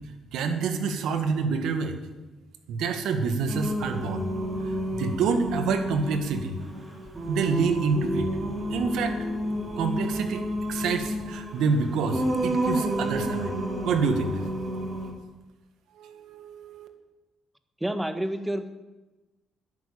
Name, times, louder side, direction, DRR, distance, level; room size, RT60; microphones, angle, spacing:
voice 1, 0.3-2.0 2.7-4.3 4.6-6.6 7.3-8.3 8.7-9.1 9.8-10.4 10.7-13.5 13.8-14.5 16.0-16.9, right 5 dB, 85° right, 7 dB, 1.8 m, -27 dB
Singing, 3.5-15.1, right 1 dB, 35° right, 3.2 m, -30 dB
voice 2, 17.8-18.7, right 1 dB, 10° right, 9 dB, 1.5 m, -29 dB
11.0 x 11.0 x 8.7 m, 1.1 s
cardioid pair, 90°, 0 cm